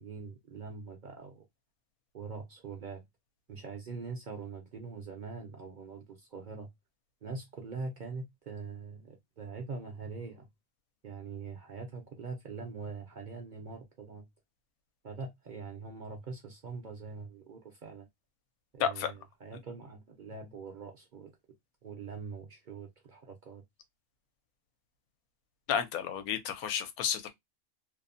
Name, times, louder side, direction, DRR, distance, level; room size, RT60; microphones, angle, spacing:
voice 1, 0.0-1.4 2.1-3.0 3.5-6.7 7.2-10.5 11.0-14.3 15.0-18.1 18.7-21.3 21.8-23.6, right 4 dB, 65° right, 0.4 m, -43 dB
voice 2, 18.8-19.1 25.7-27.3, left 8 dB, 80° left, 1.0 m, -31 dB
2.7 x 2.0 x 2.5 m
omnidirectional pair, 1.6 m